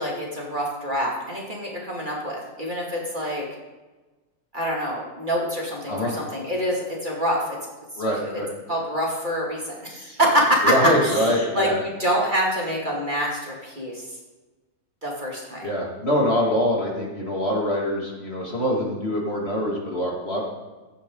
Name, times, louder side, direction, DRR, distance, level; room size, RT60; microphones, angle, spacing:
voice 1, 0.0-3.5 4.5-7.6 8.2-8.3 8.7-10.6 11.0-14.1 15.0-15.7, equal, 30° right, -3 dB, 2.8 m, -26 dB
voice 2, 8.0-8.5 10.6-11.8 15.6-20.4, equal, 40° left, -2 dB, 2.8 m, -24 dB
16.5 x 12.0 x 3.9 m, 1.2 s
omnidirectional pair, 1.7 m